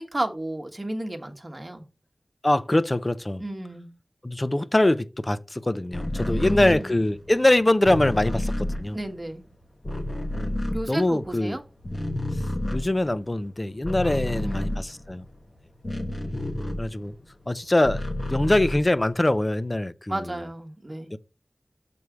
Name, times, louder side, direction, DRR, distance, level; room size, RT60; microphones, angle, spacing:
voice 1, 0.0-1.8 3.4-3.9 6.3-6.9 8.9-9.4 10.7-11.6 14.1-14.7 20.1-21.1, right 1 dB, 35° right, 1.4 m, -33 dB
voice 2, 2.4-3.4 4.2-9.0 10.3-10.6 10.9-11.6 12.7-15.2 16.8-17.1 17.5-18.0 18.3-20.3 21.1-21.2, left 1 dB, 30° left, 0.5 m, -23 dB
sound 1, 5.9-11.5 11.8-17.2 17.6-19.4, left 1 dB, 45° left, 1.2 m, -30 dB
7.0 x 3.2 x 5.9 m
wide cardioid pair, 60°, 0 cm